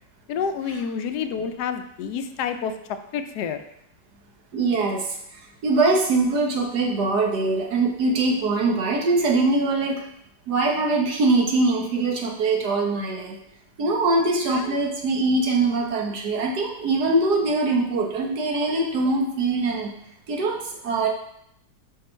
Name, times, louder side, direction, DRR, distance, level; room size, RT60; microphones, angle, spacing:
voice 1, 0.3-2.7 3.1-3.6 14.5-14.7, left 7 dB, 75° left, 9 dB, 1.1 m, -28 dB
voice 2, 4.5-5.1 5.6-10.0 10.5-13.3 13.8-19.9 20.3-20.6 20.8-21.1, right 3 dB, 75° right, 0 dB, 1.7 m, -22 dB
5.5 x 5.3 x 4.4 m, 0.75 s
omnidirectional pair, 1.8 m